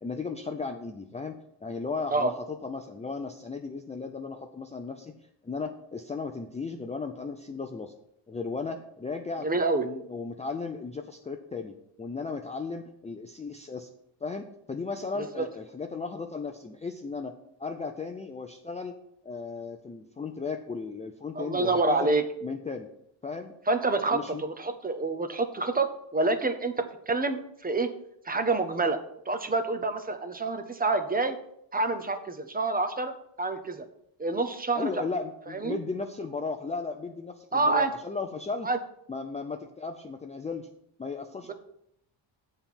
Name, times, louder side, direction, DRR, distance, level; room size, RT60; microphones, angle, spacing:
voice 1, 0.0-5.1 5.4-7.9 8.3-9.5 9.8-13.9 14.2-19.0 19.2-22.1 22.4-22.9 23.2-23.5 24.1-24.4 34.7-38.7 39.1-40.7 41.0-41.5, left 4 dB, 15° left, 5 dB, 0.4 m, -35 dB
voice 2, 9.4-9.9 21.4-22.2 23.7-26.7 27.1-27.9 28.3-29.0 29.3-31.4 31.7-33.1 33.4-33.8 34.2-34.9 35.5-35.8 37.5-37.9 38.6-38.8, right 3 dB, 20° right, 8 dB, 0.7 m, -27 dB
7.7 x 4.3 x 7.0 m, 0.74 s
cardioid pair, 125°, 47 cm